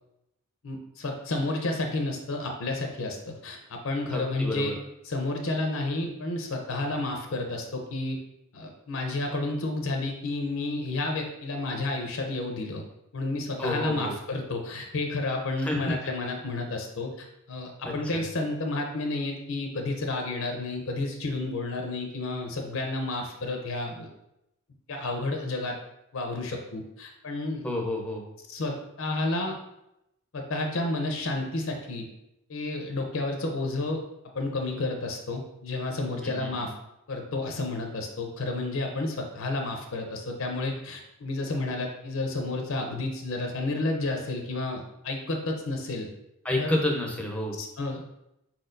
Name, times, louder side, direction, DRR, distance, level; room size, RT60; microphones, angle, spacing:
voice 1, 0.6-4.8 5.0-8.2 8.5-12.8 13.1-24.1 24.9-25.8 26.1-27.6 28.5-29.6 30.3-32.1 32.5-34.0 34.3-36.7 37.1-46.1 46.6-46.8 47.5-48.0, left 2 dB, 65° left, 3 dB, 0.6 m, -31 dB
voice 2, 4.1-4.7 13.6-14.1 15.6-16.1 17.8-18.2 27.6-28.2 36.2-36.7 46.4-47.6, left 1 dB, 5° left, 0 dB, 0.6 m, -30 dB
4.4 x 4.3 x 2.5 m, 0.85 s
head